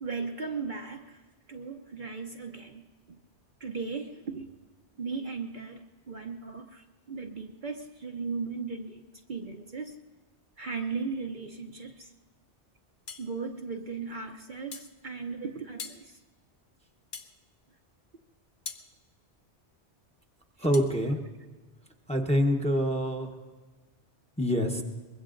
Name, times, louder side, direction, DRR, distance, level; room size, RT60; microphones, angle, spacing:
voice 1, 0.0-1.2 1.5-2.8 3.1-3.2 3.6-4.5 5.0-9.0 9.3-10.0 10.6-12.1 13.2-16.1, right 4 dB, 50° right, 3 dB, 0.8 m, -37 dB
sound 1, 13.1-13.3 14.7-14.9 15.8-16.0 17.1-17.3 18.6-18.9 20.7-20.9, left 5 dB, 50° left, 0.9 m, -41 dB
voice 2, 20.6-21.2 22.1-23.3 24.4-24.8, equal, 5° left, 4 dB, 0.9 m, -26 dB
23.5 x 21.5 x 2.5 m, 1.3 s
omnidirectional pair, 1.2 m